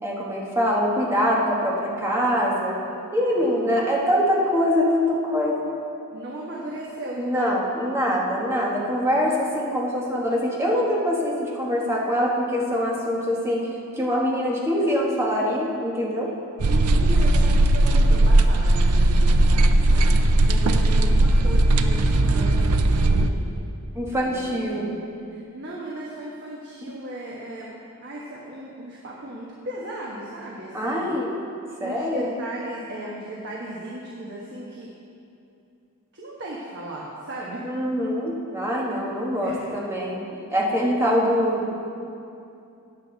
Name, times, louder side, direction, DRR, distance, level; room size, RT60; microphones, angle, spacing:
voice 1, 0.0-2.8 3.1-5.6 7.2-13.7 13.9-16.3 23.9-24.9 26.8-26.9 30.7-31.4 31.8-32.3 37.6-40.2 40.5-41.7, equal, 10° right, -3 dB, 1.5 m, -24 dB
voice 2, 3.4-3.8 6.1-7.6 16.6-23.6 24.2-25.0 25.3-27.7 28.0-31.1 31.8-34.9 36.1-37.7 39.4-39.7 40.7-40.8, right 1 dB, 50° right, -4 dB, 1.3 m, -36 dB
sound 1, 16.6-23.3, right 1 dB, 85° right, 0.6 m, -18 dB
14.5 x 8.9 x 4.0 m, 2.6 s
head